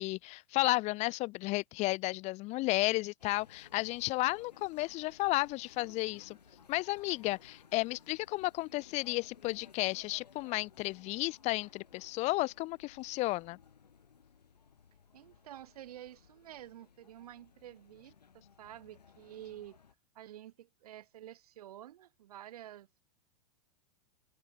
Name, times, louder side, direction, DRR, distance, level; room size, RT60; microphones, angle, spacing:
voice 1, 0.0-6.4 6.7-13.6, left 21 dB, 35° left, 0.5 m, -33 dB
sound 1, 3.2-19.9, left 6 dB, 85° left, 2.7 m, -60 dB
voice 2, 15.1-19.8 20.1-23.0, right 12 dB, 70° right, 1.6 m, -50 dB
open air
hypercardioid pair, 100°, 20 cm